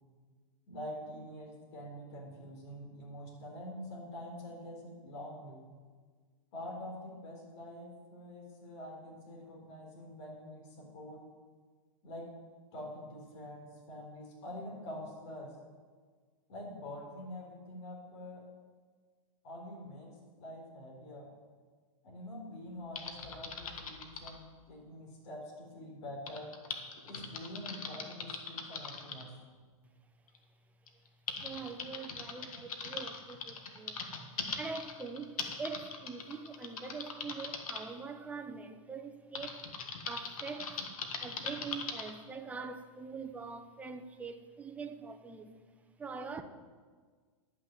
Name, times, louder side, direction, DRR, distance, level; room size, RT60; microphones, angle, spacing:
voice 1, 0.7-5.6 6.5-11.2 12.0-12.3 12.7-15.5 16.5-18.4 19.4-21.3 22.0-26.5 27.0-29.3, left 1 dB, 50° left, -1 dB, 4.0 m, -46 dB
Typing, 23.0-24.4 26.3-29.2 30.3-30.4 30.9-37.8 39.4-42.1, left 5 dB, 85° left, 1.6 m, -41 dB
voice 2, 31.3-39.7 40.1-40.8 41.2-45.6 46.0-46.4, right 4 dB, 10° right, 6 dB, 0.6 m, -44 dB
11.0 x 6.3 x 7.5 m, 1.5 s
hypercardioid pair, 145°, 18 cm